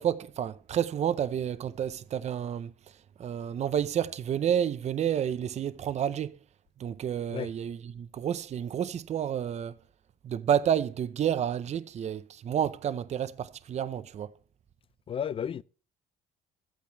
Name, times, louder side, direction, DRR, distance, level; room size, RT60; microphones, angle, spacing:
voice 1, 0.0-6.4 6.8-9.8 10.2-14.3, right 9 dB, 40° right, 0.6 m, -30 dB
voice 2, 15.1-15.6, left 8 dB, 35° left, 0.4 m, -32 dB
14.5 x 8.6 x 3.0 m
cardioid pair, 110°, 17 cm